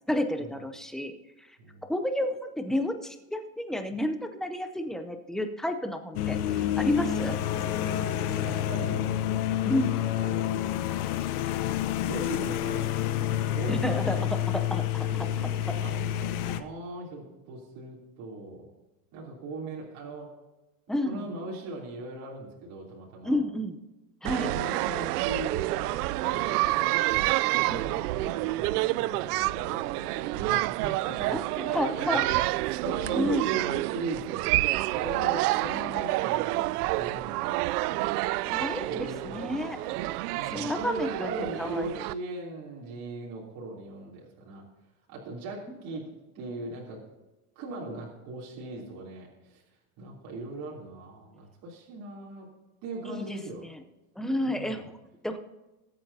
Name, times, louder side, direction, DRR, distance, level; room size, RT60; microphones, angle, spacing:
voice 1, 0.1-1.1 1.9-6.4 6.8-7.3 9.6-10.0 13.7-14.2 14.7-15.1 20.9-21.2 23.2-23.8 24.2-24.5 27.7-27.8 31.3-32.3 33.1-33.5 38.4-39.8 40.5-41.3 41.6-41.9 53.1-53.7 54.2-54.9 55.2-55.4, left 1 dB, ahead, 7 dB, 0.5 m, -30 dB
sound 1, 6.2-16.6, left 11 dB, 75° left, 1.0 m, -29 dB
voice 2, 7.9-9.1 10.2-11.1 12.0-14.8 15.1-18.7 19.1-20.3 21.0-23.4 24.4-31.6 32.0-32.4 32.8-38.0 38.9-44.6 45.1-46.0 46.3-47.0 47.5-49.6 50.0-52.5 52.8-53.6 54.4-54.9, right 2 dB, 45° right, -4 dB, 3.2 m, -40 dB
sound 2, 24.2-42.1, right 18 dB, 80° right, 0.5 m, -28 dB
21.5 x 8.8 x 2.8 m, 1.0 s
supercardioid pair, 150°, 45 cm